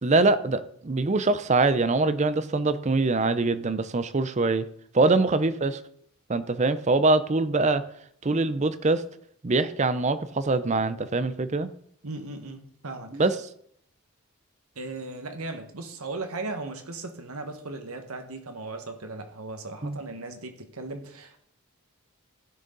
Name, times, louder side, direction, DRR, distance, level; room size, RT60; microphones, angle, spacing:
voice 1, 0.0-4.7 4.9-5.8 6.3-7.8 8.2-9.0 9.4-11.7 13.1-13.4 19.8-20.0, right 3 dB, 30° right, 13 dB, 0.5 m, -23 dB
voice 2, 12.0-13.2 14.7-21.4, right 3 dB, 80° right, 6 dB, 1.5 m, -37 dB
15.5 x 6.7 x 3.9 m, 0.68 s
head